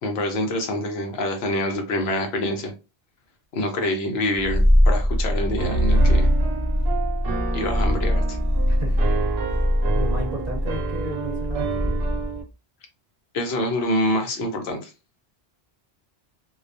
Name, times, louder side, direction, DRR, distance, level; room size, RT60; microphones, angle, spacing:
voice 1, 0.0-2.7 3.5-6.3 7.5-8.4 13.3-14.9, left 1 dB, 80° left, 0.9 m, -26 dB
Purr, 4.3-12.4, equal, 5° right, 0.8 m, -22 dB
Piano, 5.6-12.4, right 6 dB, 75° right, 0.8 m, -30 dB
voice 2, 8.7-9.0 9.5-9.6 9.9-12.0, equal, 45° right, 0.7 m, -34 dB
2.3 x 2.2 x 2.5 m
omnidirectional pair, 1.1 m